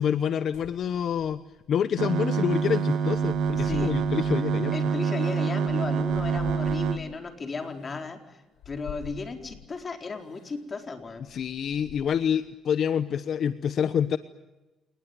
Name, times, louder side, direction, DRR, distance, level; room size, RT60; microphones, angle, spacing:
voice 1, 0.0-1.4 1.7-4.8 11.3-14.2, left 8 dB, 65° left, 12 dB, 1.0 m, -27 dB
sound 1, 0.5-1.7 2.6-4.5 4.9-7.2 7.8-8.0 8.6-9.7 10.3-10.6 11.0-12.3, left 9 dB, 85° left, 4.6 m, -45 dB
sound 2, 2.0-7.0, right 6 dB, 80° right, 1.8 m, -26 dB
voice 2, 3.6-4.0 4.7-11.2, left 4 dB, 35° left, 4 dB, 4.4 m, -35 dB
29.0 x 20.0 x 9.5 m, 1.1 s
cardioid pair, 90°, 0 cm